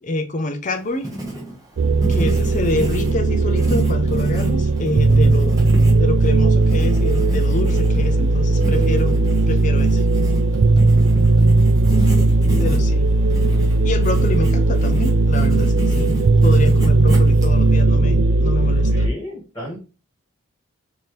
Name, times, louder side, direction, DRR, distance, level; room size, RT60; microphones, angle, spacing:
voice 1, 0.0-1.1 2.1-5.7 6.0-9.2 9.5-10.0 12.6-13.0 13.8-18.9, left 2 dB, 35° left, 0.5 m, -26 dB
Writing, 0.6-17.8, equal, 15° right, 0.9 m, -32 dB
sound 1, 1.8-19.1, right 2 dB, 65° right, 0.4 m, -17 dB
voice 2, 11.9-12.9 18.9-19.8, equal, 15° left, 1.8 m, -34 dB
4.2 x 2.8 x 3.3 m
head